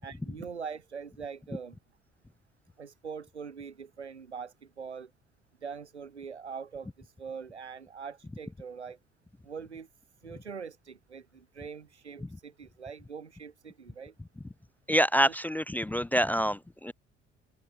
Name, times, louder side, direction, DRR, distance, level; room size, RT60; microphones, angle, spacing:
voice 1, 0.0-1.8 2.8-5.1 5.6-9.0 9.4-9.9 10.2-14.1 15.3-15.5, right 6 dB, 85° right, 2.0 m, -43 dB
voice 2, 14.9-16.9, equal, 5° left, 0.4 m, -26 dB
open air
figure-of-eight pair, 50°, 33 cm